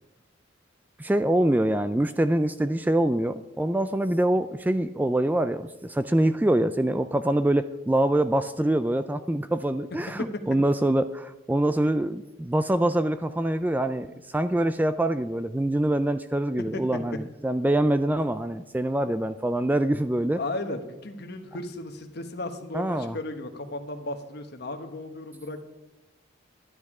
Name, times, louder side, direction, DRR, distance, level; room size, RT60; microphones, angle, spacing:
voice 1, 1.0-20.4 22.7-23.2, right 1 dB, 10° right, 11 dB, 0.3 m, -25 dB
voice 2, 20.3-25.6, left 2 dB, 55° left, 6 dB, 1.3 m, -35 dB
12.5 x 10.5 x 4.9 m, 1.0 s
head